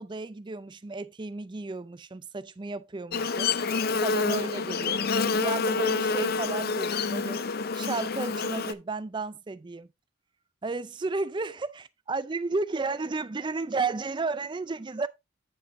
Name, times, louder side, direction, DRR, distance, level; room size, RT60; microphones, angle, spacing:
voice 1, 0.0-3.6 4.0-9.9 10.6-15.1, right 3 dB, 20° right, 0.4 m, -33 dB
Buzz, 3.1-8.7, left 4 dB, 45° left, 0.5 m, -28 dB
8.9 x 7.9 x 2.6 m
head